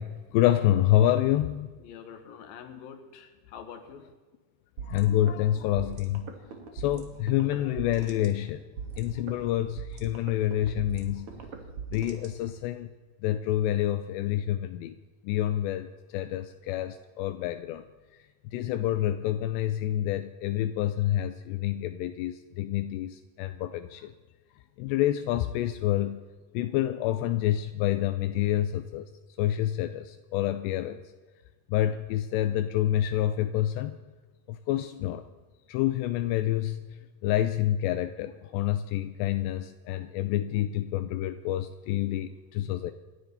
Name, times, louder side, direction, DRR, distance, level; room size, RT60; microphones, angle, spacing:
voice 1, 0.0-1.7 4.8-6.4 6.7-8.6 9.0-11.3 11.9-12.9 13.2-15.0 15.2-17.8 18.5-24.1 24.8-26.2 26.5-29.1 29.4-31.0 31.7-34.0 34.5-35.2 35.7-42.9, left 12 dB, 85° left, 9 dB, 2.8 m, -28 dB
voice 2, 1.8-4.0, left 7 dB, 65° left, 5 dB, 3.0 m, -45 dB
sound 1, 4.8-12.8, right 5 dB, 60° right, 1.6 m, -42 dB
28.0 x 11.5 x 4.1 m, 1.4 s
omnidirectional pair, 4.9 m